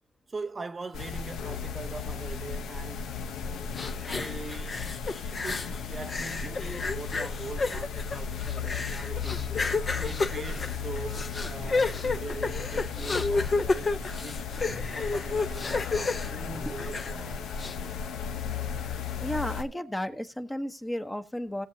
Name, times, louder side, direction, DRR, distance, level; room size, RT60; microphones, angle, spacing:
voice 1, 0.3-3.1 4.1-4.9 5.4-9.5 10.0-13.9 14.2-14.5 14.9-17.5, right 4 dB, 30° right, 0.6 m, -41 dB
sound 1, 0.9-19.6, left 6 dB, 80° left, 1.0 m, -35 dB
sound 2, 3.8-5.8 6.1-17.2 17.6-17.7, left 3 dB, 35° left, 0.9 m, -31 dB
sound 3, 10.1-16.1, right 7 dB, 75° right, 0.9 m, -54 dB
voice 2, 19.2-21.7, left 1 dB, 10° left, 1.0 m, -33 dB
18.5 x 7.5 x 2.8 m
cardioid pair, 90°, 0 cm